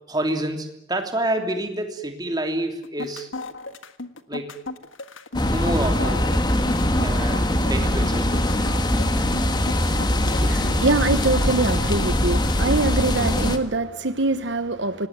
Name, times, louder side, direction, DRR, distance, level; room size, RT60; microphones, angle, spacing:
voice 1, 0.1-3.3 4.3-4.6 5.5-6.2 7.0-8.4, right 1 dB, 20° right, 4 dB, 3.1 m, -28 dB
sound 1, 2.8-13.4, left 3 dB, 90° left, 1.7 m, -35 dB
sound 2, 5.3-13.6, left 1 dB, 20° left, 1.7 m, -22 dB
voice 2, 10.2-15.1, right 3 dB, 65° right, 11 dB, 1.1 m, -24 dB
25.5 x 20.0 x 9.5 m, 0.80 s
head